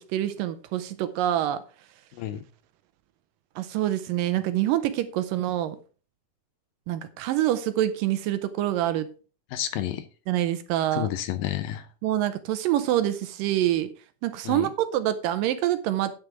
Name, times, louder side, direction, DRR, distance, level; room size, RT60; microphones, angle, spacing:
voice 1, 0.0-1.6 3.6-5.8 6.9-9.1 10.3-11.1 12.0-13.9 14.2-16.1, right 13 dB, 80° right, 2.1 m, -26 dB
voice 2, 2.1-2.4 9.5-10.1 10.9-11.9 14.5-14.7, left 12 dB, 80° left, 2.2 m, -30 dB
9.6 x 6.6 x 4.7 m
omnidirectional pair, 4.4 m